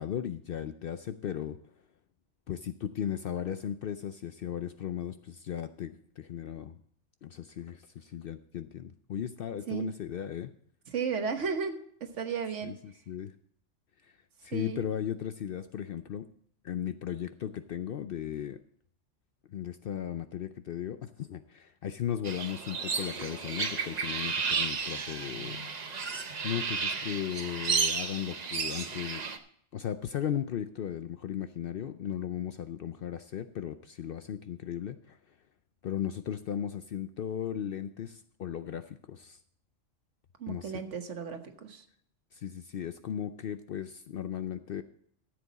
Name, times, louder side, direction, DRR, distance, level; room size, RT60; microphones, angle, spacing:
voice 1, 0.0-1.6 2.5-6.8 7.2-10.5 12.6-13.3 14.0-14.1 14.4-16.3 16.6-18.6 19.5-25.6 26.1-29.2 29.7-35.2 35.8-39.4 40.5-40.7 42.3-44.8, left 9 dB, 60° left, 10 dB, 0.6 m, -36 dB
voice 2, 10.9-12.7 14.5-14.8 40.4-41.8, right 6 dB, 80° right, 6 dB, 1.5 m, -34 dB
sound 1, 22.2-29.4, right 5 dB, 40° right, 0.8 m, -33 dB
13.5 x 7.7 x 4.1 m, 0.65 s
omnidirectional pair, 1.2 m